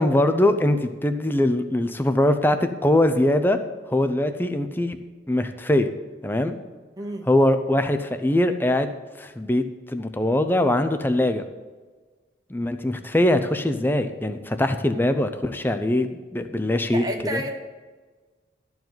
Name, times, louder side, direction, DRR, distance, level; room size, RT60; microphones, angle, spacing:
voice 1, 0.0-3.6 3.9-5.0 5.3-5.9 6.2-6.6 7.3-8.9 9.2-11.4 12.5-17.4, left 1 dB, 10° left, 9 dB, 0.5 m, -22 dB
voice 2, 7.0-7.3 16.9-17.5, equal, 20° right, 3 dB, 0.9 m, -30 dB
12.5 x 4.7 x 7.7 m, 1.4 s
head